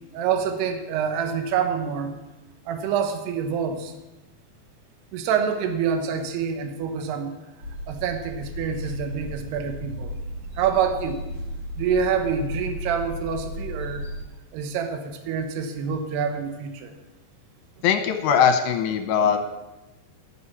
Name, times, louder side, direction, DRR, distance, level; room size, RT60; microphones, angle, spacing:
voice 1, 0.1-2.2 2.7-3.9 5.1-7.4 7.9-10.1 10.6-11.2 11.8-14.1 14.5-16.9, right 7 dB, 75° right, 6 dB, 2.9 m, -26 dB
sound 1, 7.6-14.2, equal, 40° right, 1.3 m, -35 dB
voice 2, 17.8-19.5, left 7 dB, 80° left, 6 dB, 3.1 m, -20 dB
12.5 x 7.0 x 7.1 m, 1.0 s
omnidirectional pair, 5.1 m